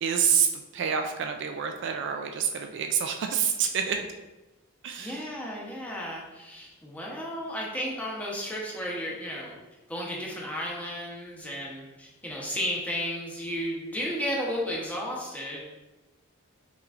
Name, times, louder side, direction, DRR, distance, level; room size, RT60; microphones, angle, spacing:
voice 1, 0.0-4.1 4.8-5.2, right 7 dB, 60° right, 5 dB, 0.3 m, -27 dB
voice 2, 5.0-9.5 9.9-15.6, equal, 5° left, -4 dB, 0.9 m, -33 dB
5.9 x 3.0 x 2.5 m, 1.1 s
head